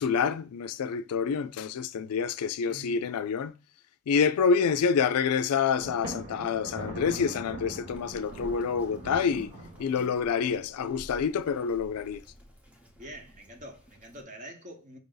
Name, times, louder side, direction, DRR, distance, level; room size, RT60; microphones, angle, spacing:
voice 1, 0.0-3.5 4.1-9.5 9.8-12.2, left 6 dB, 90° left, 0.4 m, -27 dB
voice 2, 2.6-3.1 13.0-15.0, right 1 dB, 35° right, 0.9 m, -45 dB
Thunder, 5.8-10.4, right 1 dB, 60° right, 1.6 m, -41 dB
Bird vocalization bird call bird song, 7.9-14.2, equal, 5° right, 0.7 m, -52 dB
5.2 x 2.6 x 3.8 m
head